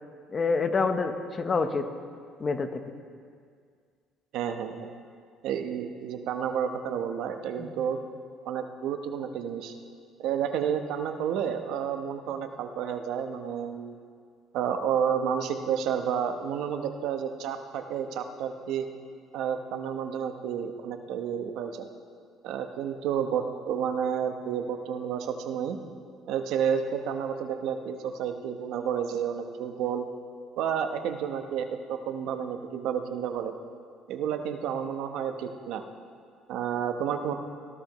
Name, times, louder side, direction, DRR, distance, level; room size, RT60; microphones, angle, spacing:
voice 1, 0.3-1.9 2.4-2.9 7.6-7.7, left 4 dB, 30° left, 8 dB, 0.8 m, -27 dB
voice 2, 4.3-4.9 5.4-8.0 8.4-9.7 10.2-14.0 14.5-18.9 19.3-21.9 22.4-25.8 26.2-30.1 30.6-33.5 34.1-35.8 36.5-37.3, right 8 dB, 75° right, 6 dB, 0.9 m, -30 dB
18.0 x 13.0 x 3.1 m, 2.1 s
cardioid pair, 130°, 0 cm